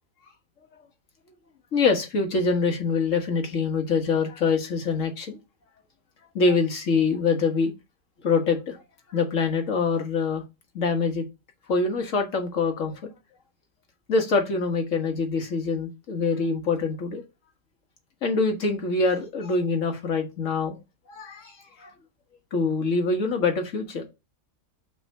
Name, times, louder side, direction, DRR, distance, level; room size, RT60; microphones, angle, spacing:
voice 1, 1.7-5.4 6.4-7.7 8.2-8.8 9.1-10.4 10.8-11.3 11.7-13.1 14.1-17.2 18.2-20.8 21.1-21.9 22.5-24.0, left 4 dB, 65° left, 1.8 m, -25 dB
6.1 x 3.5 x 5.5 m
omnidirectional pair, 1.4 m